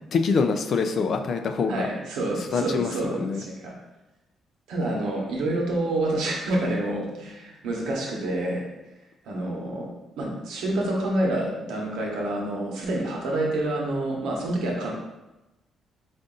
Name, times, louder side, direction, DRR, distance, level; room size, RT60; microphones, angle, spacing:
voice 1, 0.1-1.9 2.5-3.4, left 5 dB, 60° left, 7 dB, 0.4 m, -25 dB
voice 2, 1.7-3.7 4.7-8.6 9.3-14.9, right 1 dB, 85° right, -2 dB, 1.0 m, -28 dB
3.8 x 2.5 x 3.8 m, 1.0 s
cardioid pair, 90°, 0 cm